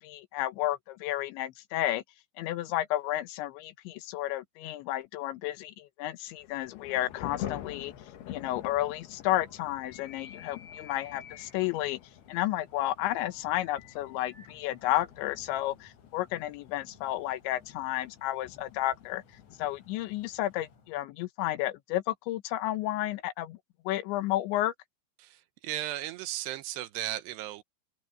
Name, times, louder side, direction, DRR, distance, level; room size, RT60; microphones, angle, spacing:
voice 1, 0.0-2.0 2.4-7.9 8.3-12.0 12.3-19.2 19.6-23.6 23.8-24.7, left 15 dB, 90° left, 3.4 m, -32 dB
Thunder / Rain, 6.3-20.7, left 11 dB, 70° left, 3.2 m, -47 dB
sound 1, 7.0-20.9, left 6 dB, 45° left, 4.4 m, -55 dB
voice 2, 25.2-27.6, right 14 dB, 75° right, 2.9 m, -36 dB
open air
omnidirectional pair, 5.1 m